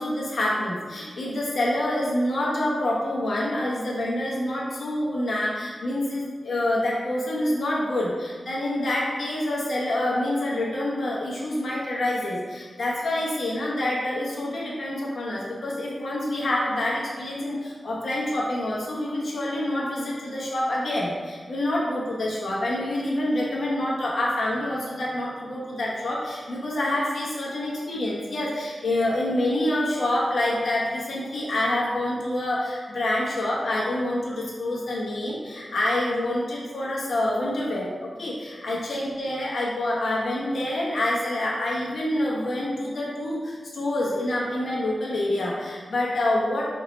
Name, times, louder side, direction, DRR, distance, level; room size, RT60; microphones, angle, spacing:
voice 1, 0.0-46.6, left 1 dB, 75° left, -5 dB, 1.2 m, -27 dB
5.3 x 2.9 x 3.2 m, 1.5 s
cardioid pair, 70°, 0 cm